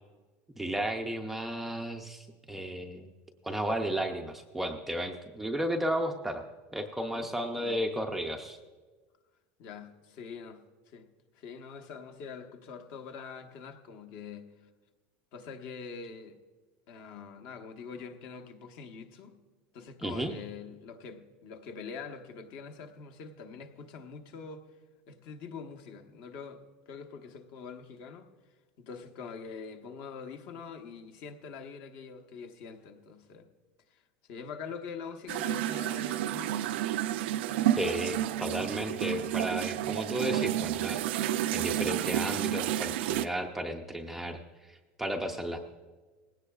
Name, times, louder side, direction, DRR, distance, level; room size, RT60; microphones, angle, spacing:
voice 1, 0.6-3.1 3.4-6.5 6.7-8.6 20.0-20.3 37.8-45.6, right 1 dB, 5° right, 3 dB, 0.5 m, -34 dB
voice 2, 7.1-7.8 9.6-11.1 11.3-14.7 15.3-16.4 16.9-19.3 19.7-24.7 25.1-28.3 28.8-33.5 33.9-34.0 34.3-36.9 39.7-39.8 45.3-45.4, left 5 dB, 45° left, 6 dB, 1.1 m, -44 dB
sound 1, 35.3-43.3, right 12 dB, 85° right, 0.5 m, -30 dB
19.5 x 16.5 x 2.4 m, 1.3 s
supercardioid pair, 175°, 6 cm